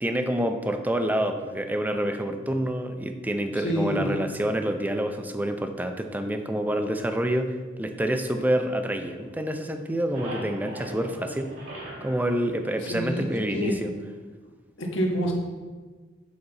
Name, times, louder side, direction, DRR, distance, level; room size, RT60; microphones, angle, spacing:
voice 1, 0.0-11.5 12.0-13.9, right 1 dB, 10° right, 6 dB, 0.5 m, -27 dB
voice 2, 3.5-4.3 12.8-13.8 14.4-14.5 14.8-15.3, equal, 75° left, 1 dB, 1.3 m, -28 dB
sound 1, 8.3-9.5 9.8-13.5, right 1 dB, 80° right, 2.3 m, -41 dB
7.9 x 5.4 x 4.0 m, 1.4 s
head